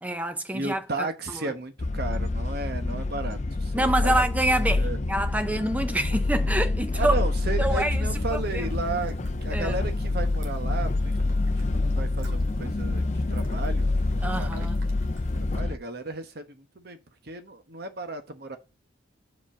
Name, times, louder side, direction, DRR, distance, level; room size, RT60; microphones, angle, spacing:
voice 1, 0.0-1.5 3.7-7.1 7.6-8.7 9.5-9.8 14.2-14.8, right 1 dB, 10° right, 0.6 m, -27 dB
voice 2, 0.5-4.2 4.6-5.0 6.9-9.1 9.4-14.7 15.3-17.0 17.2-18.6, right 3 dB, 50° right, 1.1 m, -34 dB
sound 1, 1.8-15.8, left 2 dB, 35° left, 0.5 m, -27 dB
sound 2, 8.1-15.6, right 1 dB, 85° right, 2.5 m, -43 dB
5.3 x 5.1 x 6.5 m
head